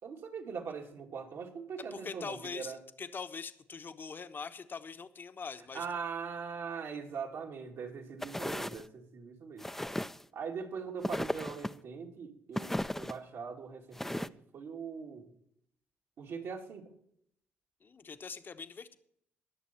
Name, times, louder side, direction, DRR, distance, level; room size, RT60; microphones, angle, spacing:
voice 1, 0.0-2.8 5.7-9.7 10.3-15.3 16.2-16.9, right 6 dB, 70° right, 1 dB, 2.4 m, -41 dB
voice 2, 1.9-5.9 17.8-19.0, left 5 dB, 45° left, 10 dB, 1.0 m, -43 dB
sound 1, 8.2-8.8 9.6-10.2 11.0-11.7 12.6-13.1 13.9-14.3, left 1 dB, 5° left, 0.5 m, -35 dB
20.0 x 6.9 x 4.4 m, 0.70 s
supercardioid pair, 65°, 5 cm